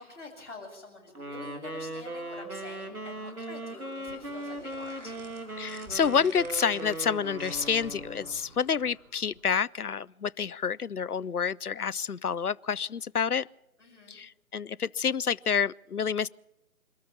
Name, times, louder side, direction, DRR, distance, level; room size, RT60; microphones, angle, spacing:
voice 1, 0.0-5.2 13.8-14.2, left 3 dB, 55° left, 7.8 m, -47 dB
Wind instrument woodwind instrument, 1.1-8.4, right 1 dB, 80° right, 3.1 m, -38 dB
sound 1, 1.9-10.0, equal, 5° left, 4.3 m, -55 dB
sound 2, 4.0-9.0, right 3 dB, 55° right, 2.6 m, -51 dB
voice 2, 5.6-13.5 14.1-16.3, left 6 dB, 85° left, 0.6 m, -28 dB
26.5 x 13.5 x 7.3 m
figure-of-eight pair, 150°, 44 cm